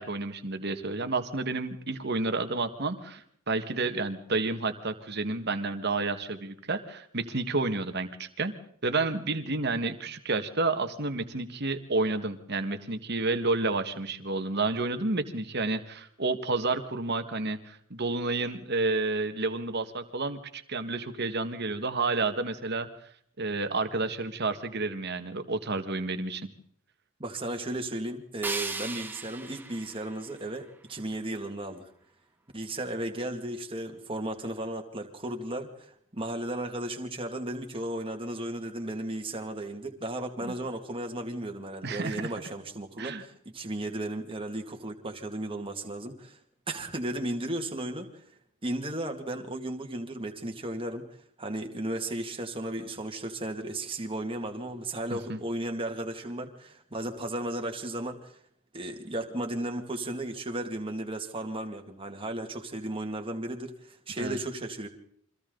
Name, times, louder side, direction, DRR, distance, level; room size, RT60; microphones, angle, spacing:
voice 1, 0.0-8.5 8.8-22.9 23.4-26.5 40.4-40.5 41.8-42.3 43.0-43.2 55.1-55.4 64.2-64.4, right 3 dB, 50° right, 8 dB, 1.7 m, -30 dB
voice 2, 27.2-31.9 32.5-46.4 46.7-48.2 48.6-51.0 51.4-58.4 58.7-64.9, right 1 dB, 25° right, 3 dB, 2.3 m, -35 dB
sound 1, 28.4-31.4, right 3 dB, 10° right, 1.1 m, -38 dB
29.5 x 24.0 x 4.0 m, 0.63 s
head